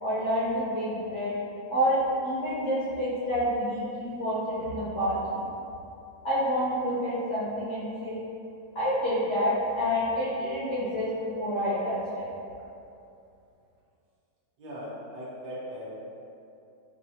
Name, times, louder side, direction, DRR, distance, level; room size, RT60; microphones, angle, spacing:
voice 1, 0.0-1.3 1.7-5.5 6.2-8.2 8.7-12.3, equal, 60° left, -10 dB, 0.7 m, -28 dB
voice 2, 14.6-16.1, equal, 60° right, -8 dB, 1.3 m, -39 dB
5.4 x 2.3 x 2.7 m, 2.6 s
omnidirectional pair, 2.2 m